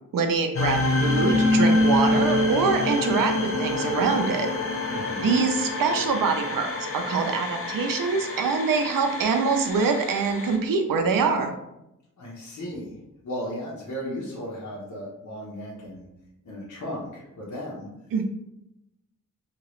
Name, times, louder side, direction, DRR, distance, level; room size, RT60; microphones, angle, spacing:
voice 1, 0.1-4.5 5.2-11.5 18.1-18.2, right 4 dB, 85° right, 5 dB, 0.5 m, -24 dB
sound 1, 0.5-10.6, left 2 dB, 45° left, 0.6 m, -26 dB
voice 2, 4.9-5.4 12.2-13.0 13.2-16.1 16.4-17.9, equal, 65° left, -6 dB, 1.0 m, -35 dB
2.9 x 2.8 x 3.1 m, 0.88 s
wide cardioid pair, 120°, 33 cm